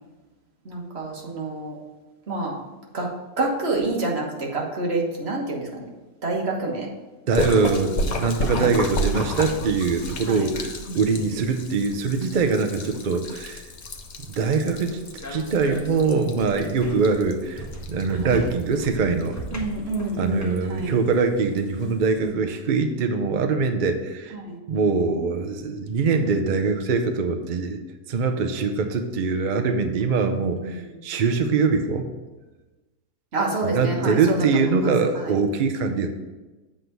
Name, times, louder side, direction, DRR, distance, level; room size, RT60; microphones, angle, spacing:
voice 1, 0.6-1.8 2.3-2.6 2.9-3.1 3.4-5.9 6.2-6.9 8.5-8.7 10.2-10.5 10.8-11.3 18.2-18.4 19.5-20.9 24.3-24.6 30.3-31.0 33.3-34.6 35.1-35.3, right 2 dB, 40° right, -1 dB, 1.5 m, -28 dB
Splash splatter, 7.3-22.3, left 1 dB, 70° left, 0.4 m, -33 dB
voice 2, 7.3-13.6 14.3-15.0 15.3-19.4 20.2-24.3 24.7-27.8 28.1-32.1 33.6-36.1, right 4 dB, 90° right, 7 dB, 0.4 m, -23 dB
sound 1, 13.8-20.9, equal, 10° left, 1.0 m, -39 dB
7.7 x 3.8 x 6.7 m, 1.1 s
omnidirectional pair, 1.7 m